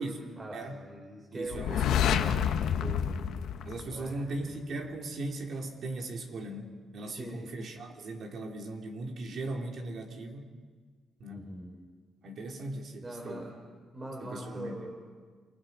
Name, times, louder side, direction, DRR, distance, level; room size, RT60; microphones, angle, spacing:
voice 1, 0.0-3.1 3.4-3.7 3.9-4.2 7.0-7.5 11.3-11.8 13.0-13.7 13.9-15.2, right 1 dB, 25° right, 0 dB, 3.8 m, -42 dB
voice 2, 0.5-0.8 1.3-2.1 3.6-10.4 11.2-11.5 12.2-13.5 14.2-14.9, right 2 dB, 60° right, 2 dB, 3.0 m, -38 dB
sound 1, 1.5-4.4, left 8 dB, 80° left, 1.2 m, -28 dB
28.0 x 20.5 x 5.5 m, 1.5 s
cardioid pair, 90°, 0 cm